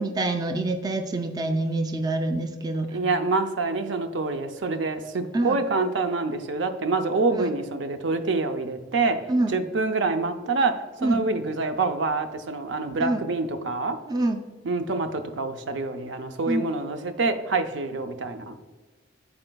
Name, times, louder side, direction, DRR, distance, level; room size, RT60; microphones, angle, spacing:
voice 1, 0.0-3.0 5.3-5.6 7.3-7.5 9.3-9.5 11.0-11.2 13.0-13.2 14.1-14.4 16.5-16.7, right 2 dB, 20° right, 5 dB, 0.4 m, -26 dB
voice 2, 2.9-9.2 9.5-10.7 11.0-14.0 14.6-18.6, right 3 dB, 75° right, 7 dB, 0.6 m, -26 dB
11.5 x 4.4 x 2.3 m, 1.3 s
head